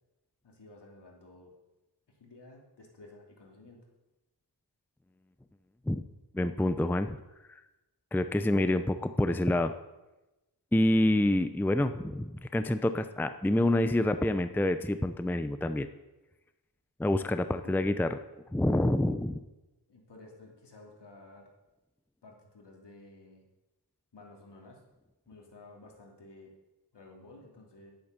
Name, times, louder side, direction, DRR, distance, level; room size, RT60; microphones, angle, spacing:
voice 1, 0.4-1.5 2.2-3.8 17.6-17.9 19.9-21.5 22.2-23.4 24.1-24.8 25.3-26.5 26.9-27.9, left 2 dB, 70° left, 0 dB, 3.0 m, -53 dB
voice 2, 6.3-7.2 8.1-9.7 10.7-15.9 17.0-18.2 18.5-19.4, left 1 dB, 5° left, 10 dB, 0.6 m, -27 dB
11.0 x 8.9 x 6.7 m, 1.0 s
cardioid pair, 65°, 42 cm